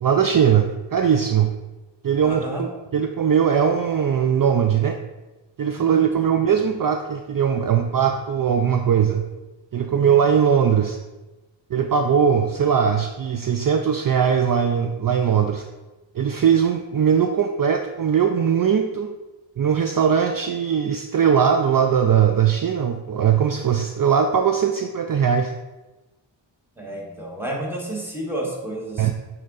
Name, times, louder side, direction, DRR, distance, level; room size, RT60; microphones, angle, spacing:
voice 1, 0.0-1.5 2.0-5.0 5.6-9.3 9.7-11.0 11.7-15.6 16.2-19.1 19.6-25.5 29.0-29.1, right 7 dB, 50° right, 6 dB, 0.4 m, -20 dB
voice 2, 2.2-2.6 6.3-6.4 26.8-29.1, right 1 dB, 5° right, -3 dB, 1.4 m, -31 dB
7.7 x 3.8 x 3.9 m, 1.1 s
wide cardioid pair, 85°, 45 cm